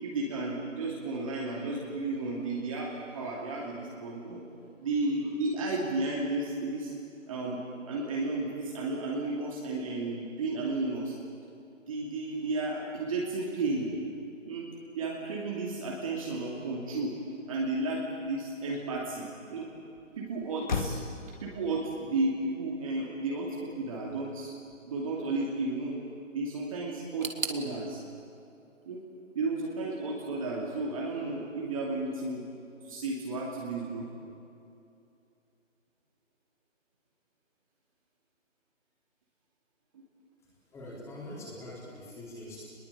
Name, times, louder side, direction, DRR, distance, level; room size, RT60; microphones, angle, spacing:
voice 1, 0.0-4.5 4.8-6.9 7.3-11.2 11.9-13.9 14.5-14.7 14.9-17.2 17.5-19.7 20.1-21.0 21.4-24.5 24.8-26.0 26.3-28.0 28.8-29.0 29.3-32.4 32.8-34.1, right 2 dB, 25° right, -3 dB, 2.8 m, -33 dB
Motor vehicle (road), 17.6-25.2, left 4 dB, 35° left, 2.0 m, -42 dB
sound 1, 27.2-30.1 30.3-31.2 31.4-31.5 32.4-32.5, right 3 dB, 75° right, 2.8 m, -41 dB
voice 2, 40.7-42.7, left 1 dB, 5° left, -5 dB, 4.2 m, -43 dB
28.0 x 21.5 x 8.7 m, 2.7 s
figure-of-eight pair, 160°, 40 cm